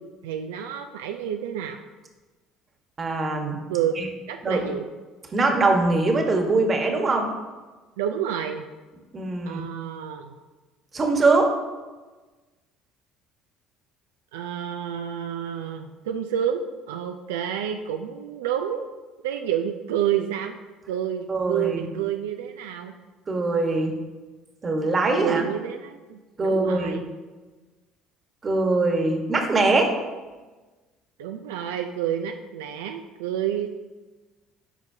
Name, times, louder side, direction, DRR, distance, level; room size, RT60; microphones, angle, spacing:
voice 1, 0.2-1.8 3.7-3.9 4.3-4.9 8.0-8.7 9.5-10.3 14.3-18.8 19.2-20.6 20.9-22.9 25.2-27.1 31.2-33.7, right 9 dB, 90° right, 5 dB, 0.4 m, -29 dB
voice 2, 3.0-3.6 4.0-4.1 4.4-4.7 5.3-7.3 9.1-9.6 10.9-11.5 21.3-21.9 23.3-23.9 24.6-25.4 26.4-27.0 28.4-29.9, right 3 dB, 35° right, 3 dB, 1.3 m, -22 dB
9.8 x 5.1 x 2.7 m, 1.3 s
supercardioid pair, 75°, 0 cm